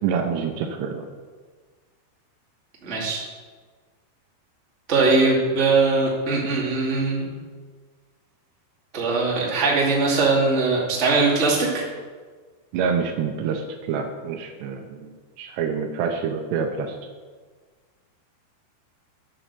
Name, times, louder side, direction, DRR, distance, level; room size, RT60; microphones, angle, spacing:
voice 1, 0.0-1.1 12.7-15.1 15.4-17.0, right 6 dB, 80° right, 5 dB, 2.8 m, -27 dB
voice 2, 2.8-3.2 4.9-7.3 8.9-11.8, right 3 dB, 25° right, -4 dB, 1.7 m, -21 dB
10.0 x 7.7 x 6.8 m, 1.5 s
omnidirectional pair, 5.1 m